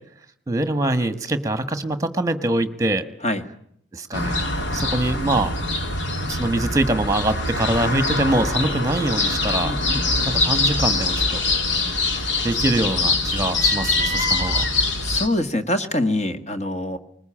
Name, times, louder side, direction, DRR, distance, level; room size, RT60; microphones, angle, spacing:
voice 1, 0.5-3.0 3.9-4.3 4.7-5.5 6.3-9.7 10.3-11.4 12.1-14.7, right 2 dB, 20° right, 11 dB, 1.3 m, -24 dB
sound 1, 4.1-15.3, left 2 dB, 85° left, 2.4 m, -23 dB
voice 2, 9.6-10.3 15.0-17.0, left 1 dB, 35° left, 7 dB, 1.5 m, -25 dB
21.0 x 20.0 x 8.8 m, 0.68 s
head